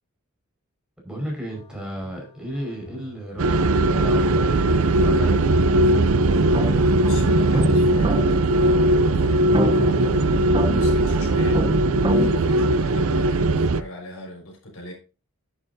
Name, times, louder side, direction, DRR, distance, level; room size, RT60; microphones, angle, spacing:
voice 1, 1.0-5.5, right 1 dB, 5° right, 5.1 m, -34 dB
sound 1, 1.5-12.2, left 1 dB, 30° left, 2.6 m, -42 dB
sound 2, 3.4-13.8, right 2 dB, 75° right, 0.6 m, -19 dB
sound 3, 6.3-12.3, equal, 25° right, 0.9 m, -28 dB
voice 2, 6.7-11.6 12.0-14.9, left 1 dB, 80° left, 5.3 m, -38 dB
11.0 x 11.0 x 2.7 m
head